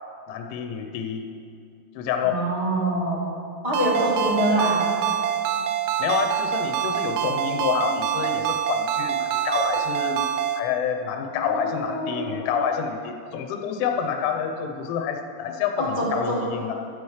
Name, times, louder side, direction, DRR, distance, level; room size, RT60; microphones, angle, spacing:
voice 1, 0.3-1.2 2.0-2.4 6.0-10.3 10.5-16.7, left 7 dB, 85° left, 4 dB, 3.3 m, -28 dB
voice 2, 2.2-3.2 3.6-4.8 11.4-12.4 15.8-16.4, right 1 dB, 15° right, -8 dB, 1.9 m, -25 dB
Ringtone, 3.7-10.6, right 10 dB, 85° right, 2.9 m, -25 dB
15.5 x 12.5 x 3.2 m, 2.5 s
omnidirectional pair, 5.6 m